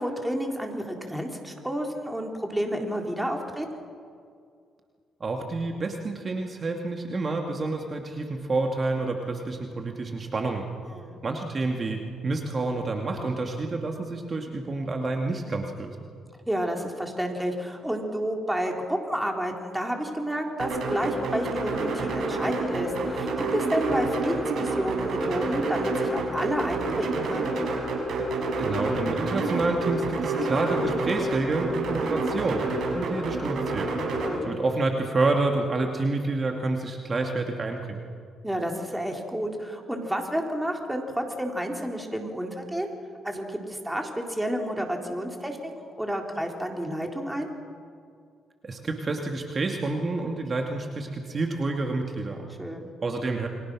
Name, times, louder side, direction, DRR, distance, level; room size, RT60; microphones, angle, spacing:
voice 1, 0.0-3.7 10.9-11.2 16.5-27.5 34.2-34.5 38.4-42.9 43.2-47.5 52.6-52.9, equal, 5° right, 2 dB, 3.8 m, -30 dB
voice 2, 5.2-10.7 11.2-16.0 28.6-32.6 32.9-33.9 34.5-38.0 48.6-52.5 53.0-53.5, right 3 dB, 35° right, 2 dB, 2.3 m, -28 dB
sound 1, 20.6-34.3, right 2 dB, 70° right, 6.4 m, -28 dB
29.0 x 23.5 x 6.3 m, 2.2 s
cardioid pair, 90°, 0 cm